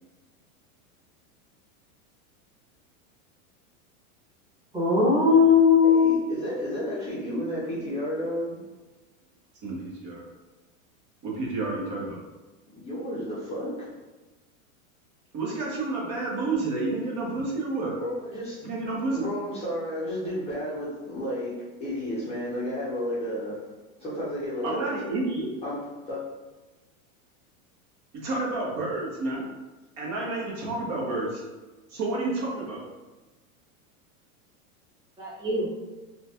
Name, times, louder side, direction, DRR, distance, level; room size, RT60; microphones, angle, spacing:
voice 1, 4.7-6.2 35.2-35.7, left 5 dB, 10° right, -8 dB, 1.1 m, -19 dB
voice 2, 5.8-8.7 12.7-13.9 18.0-18.7 19.1-23.7 24.0-25.0 25.6-26.2, equal, 15° left, -9 dB, 0.6 m, -32 dB
voice 3, 9.6-10.2 11.2-12.2 15.3-18.0 18.6-19.2 24.6-25.5 28.1-29.5 30.0-31.4 31.9-32.8, right 2 dB, 45° right, -4 dB, 1.0 m, -30 dB
3.0 x 2.3 x 2.7 m, 1.2 s
supercardioid pair, 130°, 42 cm